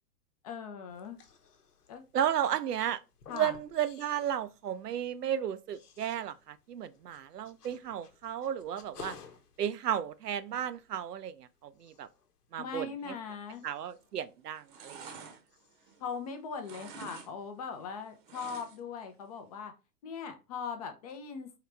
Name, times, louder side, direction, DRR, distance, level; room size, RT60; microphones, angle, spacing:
voice 1, 0.4-1.2 1.9-2.0 3.3-3.6 12.6-13.6 16.0-19.7 20.0-21.6, left 6 dB, 25° left, 0.5 m, -40 dB
sound 1, 0.9-15.2 15.5-16.1, left 6 dB, 65° left, 1.1 m, -56 dB
voice 2, 2.1-3.0 3.3-9.1 9.6-12.1 12.5-13.2 13.6-15.1, right 10 dB, 70° right, 0.5 m, -34 dB
sound 2, 13.8-14.2 14.5-16.3 16.6-17.3 17.6-19.0 19.3-19.4, right 5 dB, 30° right, 0.8 m, -48 dB
4.7 x 3.1 x 3.3 m
figure-of-eight pair, 110°, 49 cm